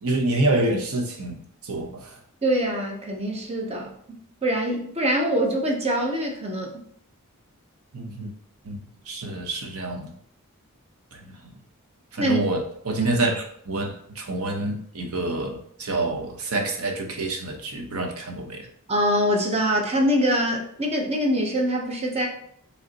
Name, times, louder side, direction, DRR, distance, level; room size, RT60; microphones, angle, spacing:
voice 1, 0.0-2.1 7.9-8.3 8.7-8.8 9.1-10.1 12.1-18.6, right 2 dB, 75° right, 3 dB, 0.8 m, -27 dB
voice 2, 2.4-3.9 4.4-6.7 12.2-12.4 13.0-13.1 18.9-22.3, equal, 30° right, 0 dB, 0.9 m, -24 dB
5.3 x 3.3 x 2.9 m, 0.67 s
head